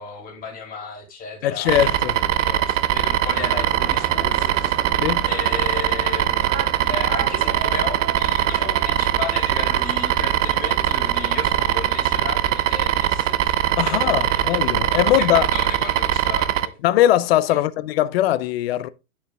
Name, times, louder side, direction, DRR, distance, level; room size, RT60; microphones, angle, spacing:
voice 1, 0.0-4.8 5.3-6.5 6.9-13.6 13.8-16.7 17.5-17.6, left 4 dB, 20° left, 2.7 m, -34 dB
voice 2, 1.4-2.2 5.0-5.3 13.8-15.5 16.8-18.9, left 13 dB, 45° left, 0.5 m, -20 dB
sound 1, 1.7-16.7, right 12 dB, 55° right, 0.6 m, -21 dB
sound 2, 3.3-11.9, right 7 dB, 25° right, 1.0 m, -36 dB
9.3 x 6.7 x 2.3 m
hypercardioid pair, 125°, 45 cm